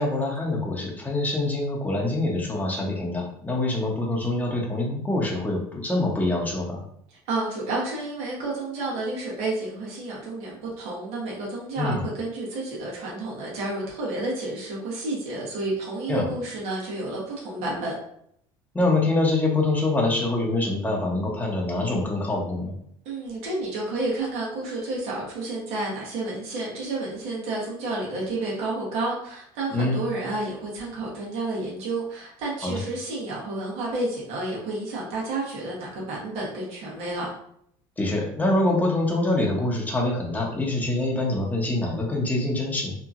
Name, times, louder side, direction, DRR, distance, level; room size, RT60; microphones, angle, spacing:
voice 1, 0.0-6.8 11.8-12.0 16.1-16.3 18.7-22.7 29.7-30.0 32.6-32.8 38.0-42.9, left 2 dB, 15° left, -1 dB, 0.8 m, -25 dB
voice 2, 7.1-17.9 23.0-37.3, right 2 dB, 65° right, -4 dB, 1.1 m, -30 dB
2.8 x 2.5 x 2.4 m, 0.69 s
supercardioid pair, 105°, 12 cm